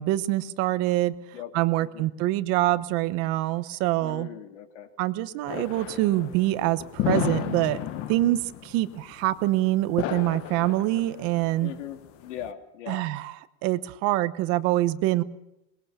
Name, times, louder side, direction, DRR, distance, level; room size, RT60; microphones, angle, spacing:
voice 1, 0.0-1.1 1.5-4.3 5.0-7.8 8.1-11.7 12.9-13.3 13.6-15.2, right 16 dB, 40° right, 14 dB, 1.0 m, -25 dB
voice 2, 1.8-2.1 4.0-4.9 11.6-13.0, left 10 dB, 75° left, 6 dB, 3.1 m, -39 dB
sound 1, 5.5-12.5, left 13 dB, 40° left, 1.4 m, -33 dB
22.5 x 21.0 x 6.8 m, 0.87 s
supercardioid pair, 155°, 36 cm